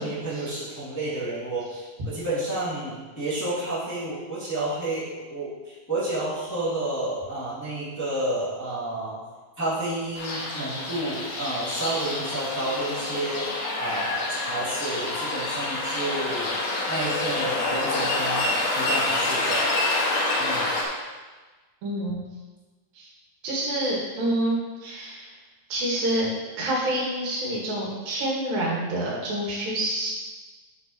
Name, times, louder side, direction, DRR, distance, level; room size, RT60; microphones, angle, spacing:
voice 1, 0.0-9.2 9.6-16.5 16.9-19.7 20.4-20.7, right 1 dB, 5° left, -11 dB, 2.1 m, -30 dB
sound 1, 10.2-20.9, left 2 dB, 70° left, 2.9 m, -27 dB
voice 2, 21.8-22.2 23.0-23.1 23.4-25.3 25.7-26.3 26.6-30.1, right 1 dB, 85° right, -5 dB, 3.6 m, -27 dB
9.2 x 7.2 x 3.1 m, 1.3 s
omnidirectional pair, 4.0 m